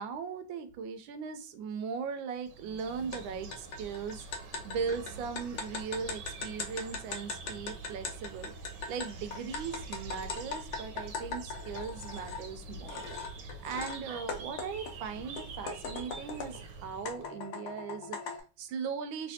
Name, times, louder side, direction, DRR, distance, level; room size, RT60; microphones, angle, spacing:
voice 1, 0.0-13.1 13.4-19.3, right 6 dB, 90° right, 9 dB, 1.3 m, -39 dB
sound 1, 2.4-17.3, right 3 dB, 70° right, 1.2 m, -46 dB
sound 2, 3.1-3.2 3.5-12.4 12.9-14.0 14.3-16.6 17.1-18.4, left 5 dB, 70° left, 1.1 m, -40 dB
3.2 x 3.1 x 2.7 m, 0.34 s
omnidirectional pair, 2.1 m